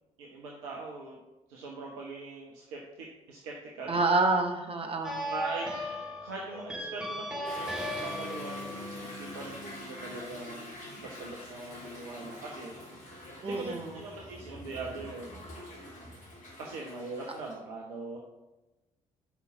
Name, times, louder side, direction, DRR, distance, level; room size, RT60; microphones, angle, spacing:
voice 1, 0.2-1.2 1.5-4.0 5.3-5.7 6.2-13.1 13.4-15.4 16.6-18.2, right 3 dB, 70° right, -2 dB, 1.2 m, -41 dB
voice 2, 3.9-5.3 13.4-14.0, right 3 dB, 35° right, 3 dB, 1.6 m, -28 dB
sound 1, 5.0-10.1, equal, 5° right, 2.5 m, -37 dB
Toilet flush / Drip / Trickle dribble, 7.4-17.5, left 1 dB, 50° left, 3.4 m, -46 dB
7.0 x 5.6 x 6.2 m, 1.0 s
figure-of-eight pair, 45°, 18 cm